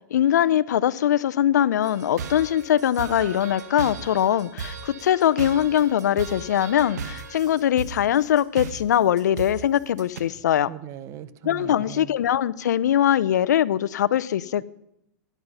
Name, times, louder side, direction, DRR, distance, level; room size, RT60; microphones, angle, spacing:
voice 1, 0.1-10.7 11.4-14.6, left 10 dB, 80° left, 18 dB, 0.7 m, -22 dB
sound 1, 1.8-10.2, right 5 dB, 75° right, 1.9 m, -36 dB
voice 2, 10.7-12.1, right 11 dB, 30° right, 14 dB, 0.9 m, -39 dB
17.0 x 10.5 x 5.6 m, 0.81 s
hypercardioid pair, 140°, 9 cm